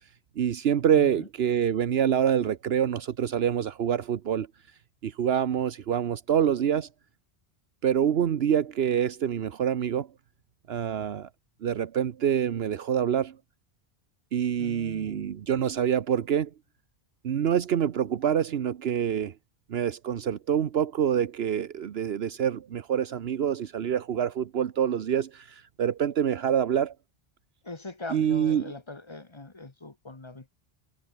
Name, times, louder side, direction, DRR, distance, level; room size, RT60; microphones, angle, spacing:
voice 1, 0.4-4.5 5.0-6.9 7.8-10.1 10.7-11.3 11.6-13.4 14.3-16.5 17.2-19.3 19.7-26.9 28.1-28.7, right 9 dB, 75° right, 1.1 m, -26 dB
voice 2, 0.9-1.3 14.6-15.3 27.6-30.5, left 2 dB, 30° left, 1.4 m, -41 dB
omnidirectional pair, 1.0 m